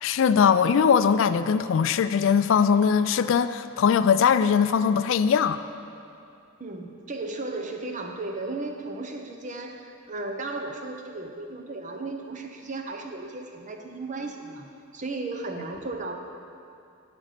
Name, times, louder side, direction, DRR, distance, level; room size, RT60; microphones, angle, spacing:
voice 1, 0.0-5.6, left 7 dB, 65° left, 13 dB, 0.3 m, -21 dB
voice 2, 6.6-16.1, right 2 dB, 35° right, 4 dB, 0.8 m, -35 dB
11.5 x 5.3 x 6.6 m, 2.6 s
head